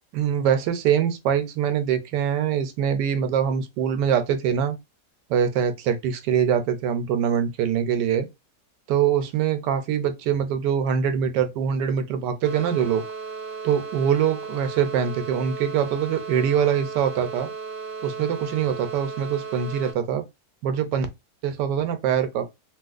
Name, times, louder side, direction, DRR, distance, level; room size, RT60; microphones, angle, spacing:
voice 1, 0.1-4.8 5.3-8.3 8.9-13.0 13.6-17.5 18.0-20.2 20.6-21.1 21.4-22.5, right 8 dB, 90° right, 1.2 m, -23 dB
sound 1, 12.4-19.9, right 5 dB, 60° right, 0.5 m, -35 dB
2.9 x 2.8 x 2.4 m
omnidirectional pair, 1.8 m